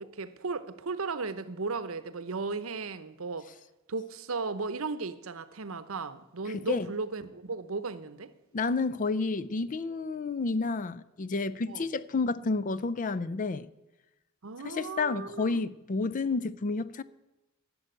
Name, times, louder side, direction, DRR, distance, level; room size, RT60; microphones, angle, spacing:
voice 1, 0.0-3.5 3.9-8.3 11.7-11.9 14.4-15.7, right 4 dB, 75° right, 0.8 m, -36 dB
voice 2, 8.5-13.7 14.6-17.0, left 3 dB, 40° left, 0.4 m, -30 dB
12.0 x 7.7 x 9.0 m
head